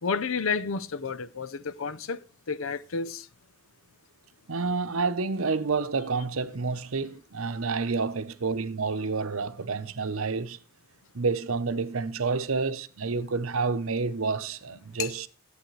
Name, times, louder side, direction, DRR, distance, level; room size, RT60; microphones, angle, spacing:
voice 1, 0.0-3.3 15.0-15.1, left 5 dB, 70° left, 0.6 m, -31 dB
voice 2, 4.5-10.6 11.1-15.3, right 4 dB, 80° right, 0.8 m, -29 dB
11.5 x 8.3 x 3.2 m
head